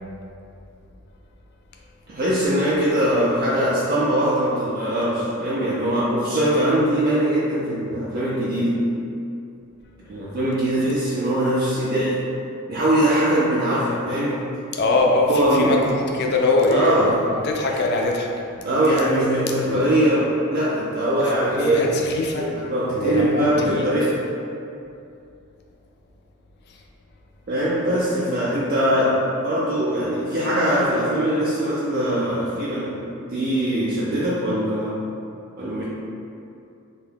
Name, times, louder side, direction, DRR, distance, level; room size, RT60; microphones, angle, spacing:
voice 1, 2.1-8.8 10.1-12.2 12.7-14.4 15.3-15.8 16.7-17.1 18.6-21.9 22.4-24.2 27.5-33.0 33.3-35.0 35.6-35.8, right 1 dB, 45° right, -7 dB, 0.4 m, -21 dB
voice 2, 14.7-18.3 19.6-19.9 21.7-22.5 22.9-23.9, left 2 dB, 50° left, 1 dB, 0.3 m, -22 dB
2.7 x 2.2 x 3.3 m, 2.6 s
head